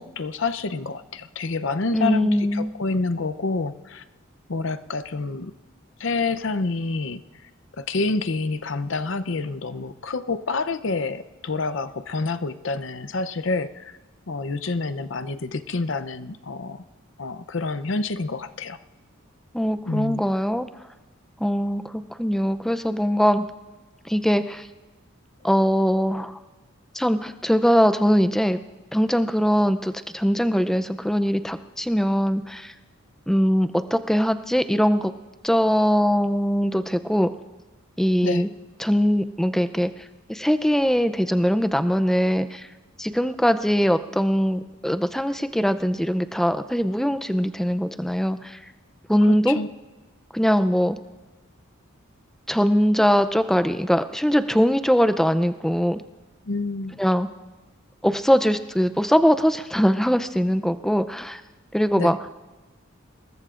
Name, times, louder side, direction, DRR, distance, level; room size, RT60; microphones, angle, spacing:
voice 1, 0.0-4.0 4.5-5.5 6.0-7.5 7.8-14.0 14.3-16.8 17.2-18.8 19.9-20.2 38.2-38.5 49.2-49.7 56.4-57.0 62.0-62.2, left 3 dB, 60° left, 12 dB, 0.7 m, -28 dB
voice 2, 1.9-2.7 19.5-20.7 21.4-23.4 24.0-24.7 25.4-26.4 26.9-28.6 28.9-32.7 33.3-35.1 35.4-37.3 38.0-38.5 38.8-42.7 43.0-48.6 49.1-49.6 50.3-51.0 52.5-56.0 57.0-57.3 58.0-61.4 61.7-62.2, equal, ahead, 10 dB, 0.5 m, -21 dB
27.0 x 21.0 x 2.5 m, 1.2 s
head